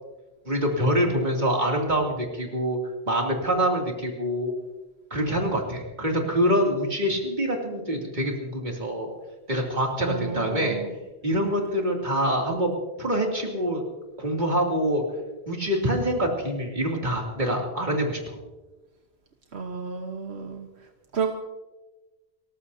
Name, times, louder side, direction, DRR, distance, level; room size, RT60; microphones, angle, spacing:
voice 1, 0.4-4.5 5.1-9.1 9.5-10.8 11.2-12.7 13.0-13.8 14.2-15.0 15.5-18.4, equal, 45° right, 0 dB, 2.9 m, -25 dB
voice 2, 10.0-10.9 19.5-21.3, right 5 dB, 80° right, 3 dB, 1.4 m, -32 dB
30.0 x 14.5 x 2.8 m, 1.1 s
omnidirectional pair, 1.1 m